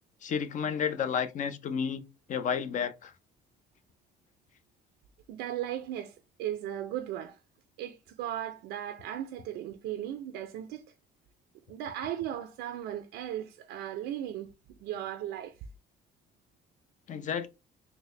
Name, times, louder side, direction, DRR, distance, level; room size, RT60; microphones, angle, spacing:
voice 1, 0.2-2.0 2.3-3.1 17.1-17.5, left 7 dB, 50° left, 0.6 m, -31 dB
voice 2, 5.3-7.4 7.8-10.8 11.7-14.5 14.8-15.5, right 11 dB, 90° right, 0.5 m, -36 dB
4.0 x 2.1 x 3.1 m
cardioid pair, 110°, 17 cm